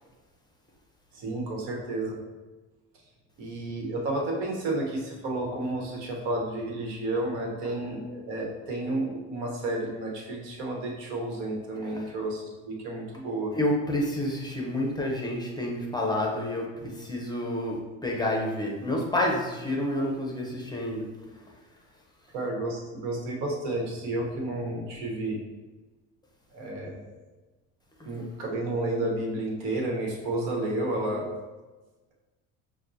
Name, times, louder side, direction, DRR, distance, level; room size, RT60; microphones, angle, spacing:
voice 1, 1.1-2.2 3.4-13.5 22.3-25.4 26.5-27.2 28.0-31.3, right 2 dB, 75° right, -1 dB, 1.2 m, -31 dB
voice 2, 13.6-21.1 28.0-28.1 30.8-31.2, left 1 dB, 10° left, -1 dB, 0.7 m, -29 dB
5.9 x 2.3 x 2.7 m, 1.2 s
supercardioid pair, 95°, 37 cm